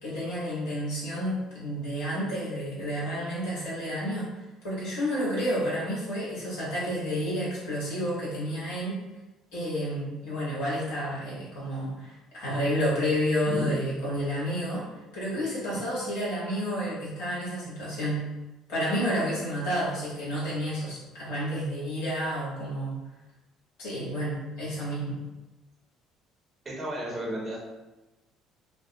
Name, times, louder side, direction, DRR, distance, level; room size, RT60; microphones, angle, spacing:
voice 1, 0.0-4.3 4.6-9.0 9.5-14.9 15.1-18.2 18.7-23.0 23.8-25.2, equal, 70° left, -8 dB, 1.5 m, -30 dB
voice 2, 13.5-13.8 26.6-27.6, equal, 30° right, -4 dB, 0.9 m, -32 dB
4.5 x 2.1 x 2.2 m, 1.1 s
hypercardioid pair, 55°, 0 cm